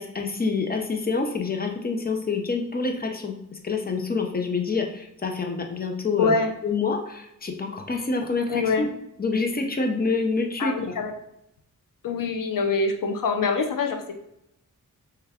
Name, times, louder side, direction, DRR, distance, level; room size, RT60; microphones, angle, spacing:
voice 1, 0.0-6.3 6.6-8.9 9.2-10.9, left 4 dB, 30° left, 3 dB, 0.6 m, -27 dB
voice 2, 6.2-6.5 8.5-8.9 10.6-11.1 12.0-14.1, left 4 dB, 75° left, 4 dB, 0.7 m, -24 dB
3.4 x 3.4 x 3.5 m, 0.83 s
wide cardioid pair, 105°, 33 cm